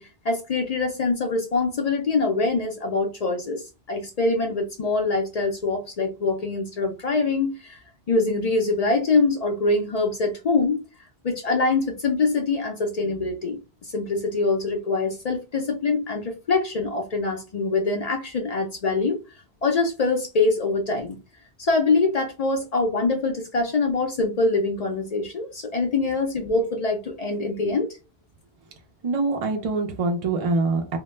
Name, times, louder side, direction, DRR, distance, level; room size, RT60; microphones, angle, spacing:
voice 1, 0.0-7.8 8.1-10.8 11.2-19.2 19.6-21.2 21.6-27.9, left 3 dB, 60° left, 0.4 m, -24 dB
voice 2, 29.0-31.0, right 3 dB, 65° right, 0.3 m, -24 dB
2.1 x 2.0 x 3.1 m
omnidirectional pair, 1.1 m